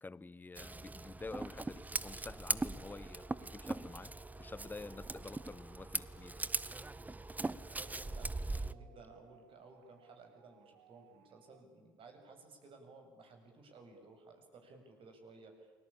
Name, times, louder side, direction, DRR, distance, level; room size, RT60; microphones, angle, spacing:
voice 1, 0.0-6.5, left 3 dB, 15° left, 0.8 m, -49 dB
Scissors, 0.6-8.7, right 2 dB, 15° right, 1.0 m, -40 dB
sound 1, 2.8-11.6, right 10 dB, 70° right, 2.1 m, -66 dB
voice 2, 7.7-15.7, right 3 dB, 50° right, 7.4 m, -57 dB
29.0 x 21.5 x 8.8 m
figure-of-eight pair, 55°, 12 cm